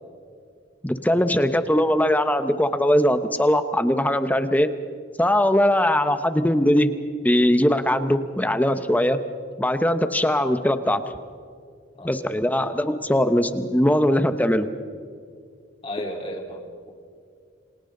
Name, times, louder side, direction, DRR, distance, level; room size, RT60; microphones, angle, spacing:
voice 1, 0.8-4.7 5.2-6.9 7.2-9.2 9.6-11.0 12.0-14.7, left 1 dB, 10° left, 10 dB, 0.9 m, -20 dB
voice 2, 15.8-16.9, equal, 30° left, 0 dB, 3.8 m, -34 dB
29.0 x 25.5 x 3.9 m, 2.2 s
head